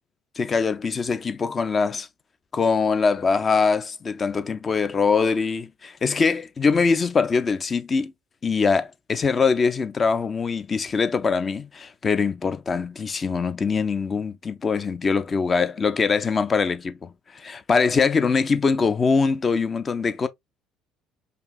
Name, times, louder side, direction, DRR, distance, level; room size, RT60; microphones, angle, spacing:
voice 1, 0.4-2.1 2.5-8.1 8.4-20.3, left 5 dB, 35° left, 0.5 m, -23 dB
5.2 x 2.6 x 2.5 m
hypercardioid pair, 60°, 0 cm